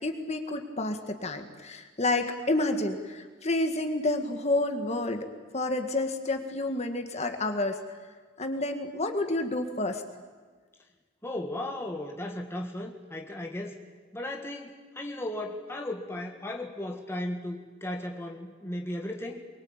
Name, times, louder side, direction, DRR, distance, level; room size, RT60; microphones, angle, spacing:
voice 1, 0.0-5.2 5.5-7.8 8.4-10.0, left 2 dB, 35° left, 6 dB, 1.9 m, -29 dB
voice 2, 11.2-13.8 14.1-19.4, left 1 dB, 15° left, 1 dB, 1.8 m, -36 dB
24.0 x 23.0 x 8.9 m, 1.5 s
head